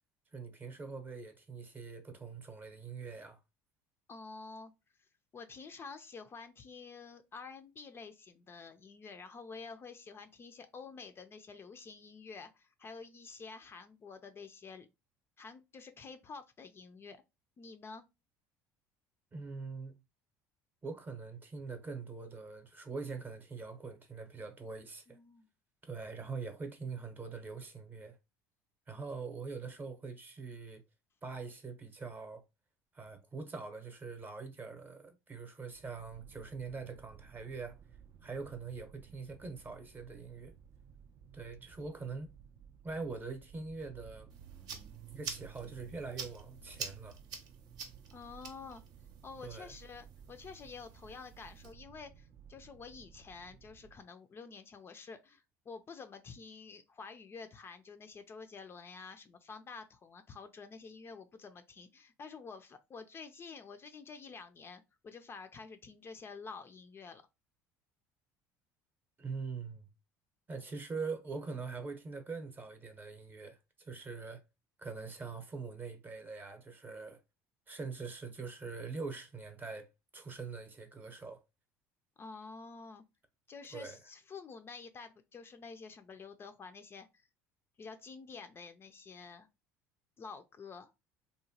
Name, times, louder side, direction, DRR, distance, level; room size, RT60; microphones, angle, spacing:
voice 1, 0.3-3.4 19.3-19.9 20.8-25.2 25.9-28.2 28.9-30.8 31.2-32.4 32.9-37.8 38.2-40.5 41.3-42.3 42.8-44.3 45.1-47.2 49.4-49.7 69.2-69.9 70.5-74.4 74.8-77.2 77.7-79.9 80.1-81.4 83.7-84.0, right 4 dB, 25° right, 0.7 m, -43 dB
voice 2, 4.1-4.7 5.3-14.9 15.4-17.2 17.6-18.0 25.1-25.5 48.1-48.8 49.2-67.2 82.2-83.0 83.5-87.1 87.8-89.5 90.2-90.9, left 4 dB, 30° left, 0.4 m, -49 dB
sound 1, 35.7-54.0, right 7 dB, 40° right, 0.3 m, -56 dB
sound 2, 44.3-51.7, right 6 dB, 65° right, 0.7 m, -48 dB
2.9 x 2.1 x 2.7 m
supercardioid pair, 85°, 7 cm